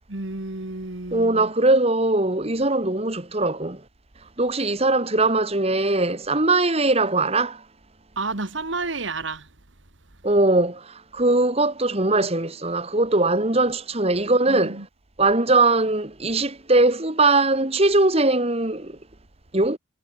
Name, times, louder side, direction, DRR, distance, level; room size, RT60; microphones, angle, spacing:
voice 1, 0.1-1.5 8.2-9.5 14.5-14.9, right 3 dB, 70° right, 2.1 m, -31 dB
voice 2, 1.1-3.8 4.4-7.6 10.2-14.8 15.2-19.0 19.5-19.8, right 2 dB, 30° right, 2.3 m, -21 dB
head